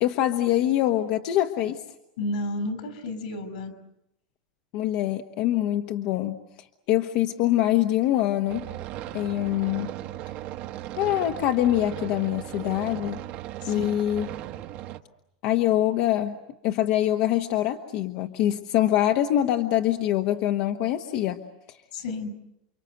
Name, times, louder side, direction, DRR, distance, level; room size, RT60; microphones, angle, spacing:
voice 1, 0.0-1.8 4.7-8.7 9.1-9.9 11.0-13.2 13.7-14.3 15.4-16.4 16.6-21.4 21.7-21.8, left 13 dB, 45° left, 6 dB, 1.2 m, -24 dB
voice 2, 2.2-3.7 13.6-13.9 21.9-22.3, left 2 dB, 75° left, 11 dB, 5.5 m, -31 dB
sound 1, 8.5-15.0, right 13 dB, 40° right, 1.2 m, -37 dB
29.5 x 25.0 x 7.9 m, 0.84 s
supercardioid pair, 170°, 4 cm